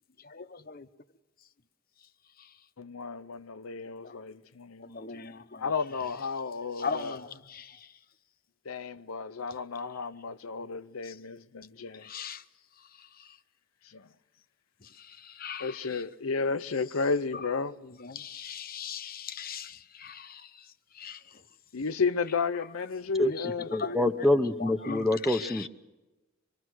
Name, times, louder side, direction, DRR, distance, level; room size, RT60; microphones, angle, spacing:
voice 1, 0.3-0.8 4.8-5.6 6.8-7.3 12.1-12.4 15.4-16.0 17.3-17.5 17.8-20.3 21.0-21.2 23.4-24.3 24.6-25.7, left 5 dB, 40° left, 0.9 m, -38 dB
voice 2, 2.8-7.3 8.7-12.1 13.9-14.1 15.6-17.7 21.7-23.7, left 4 dB, 80° left, 0.7 m, -33 dB
voice 3, 23.7-25.7, left 1 dB, ahead, 0.8 m, -26 dB
25.5 x 23.5 x 6.3 m
head